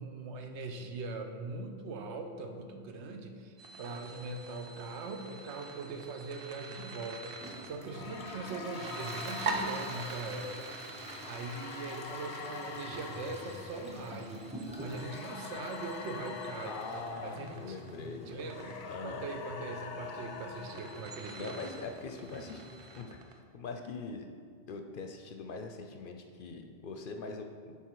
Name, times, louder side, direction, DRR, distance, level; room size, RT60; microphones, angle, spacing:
voice 1, 0.0-16.8 17.2-21.6, right 3 dB, 85° right, 5 dB, 1.0 m, -41 dB
sound 1, 3.6-23.3, right 3 dB, 60° right, 0.8 m, -45 dB
Toilet flush, 7.4-23.0, equal, 5° right, 0.7 m, -48 dB
sound 2, 7.9-18.1 18.4-21.8, left 5 dB, 90° left, 0.9 m, -45 dB
voice 2, 8.0-8.4 16.7-18.5 18.9-19.3 21.3-22.6 23.0-23.2 23.5-24.3 24.7-27.8, left 3 dB, 60° left, 5 dB, 0.6 m, -42 dB
9.2 x 3.5 x 4.6 m, 2.1 s
omnidirectional pair, 1.1 m